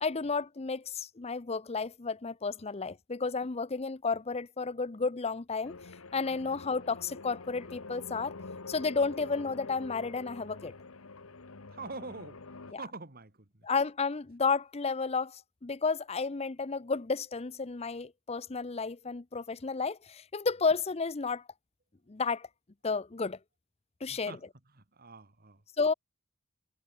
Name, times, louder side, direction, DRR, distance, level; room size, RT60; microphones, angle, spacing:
voice 1, 0.0-8.3 8.7-10.7 12.7-12.8 13.6-21.4 22.1-22.5 22.8-23.4 24.0-24.4 25.8-25.9, left 4 dB, 30° left, 0.6 m, -32 dB
sound 1, 5.6-12.7, left 3 dB, 70° left, 1.3 m, -46 dB
voice 2, 11.7-12.4 12.8-13.5 24.1-24.4 25.0-25.6, right 3 dB, 45° right, 2.3 m, -44 dB
head